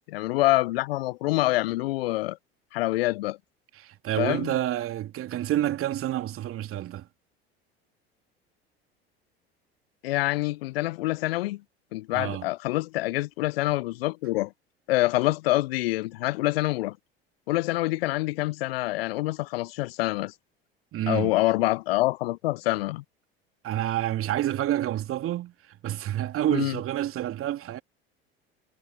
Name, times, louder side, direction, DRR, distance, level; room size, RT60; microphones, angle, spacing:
voice 1, 0.1-2.4 2.7-3.4 4.2-4.5 10.0-11.6 11.9-14.5 14.9-17.0 17.5-20.3 21.1-23.0 26.5-26.7, left 19 dB, 65° left, 1.1 m, -26 dB
voice 2, 3.7-7.1 12.1-12.5 20.9-21.3 23.6-27.8, right 13 dB, 45° right, 2.9 m, -28 dB
figure-of-eight pair, 65°, 32 cm